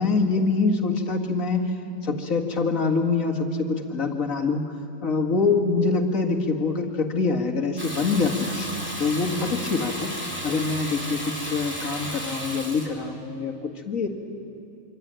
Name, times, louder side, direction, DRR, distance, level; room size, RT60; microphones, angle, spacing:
voice 1, 0.0-1.8 2.0-4.6 5.0-8.7 9.0-10.1 10.4-14.1, left 4 dB, 70° left, 2 dB, 2.3 m, -25 dB
Water tap faucet / Bathtub (filling or washing), 7.8-12.9, equal, 10° right, 3.6 m, -33 dB
26.0 x 25.0 x 9.0 m, 2.6 s
omnidirectional pair, 1.5 m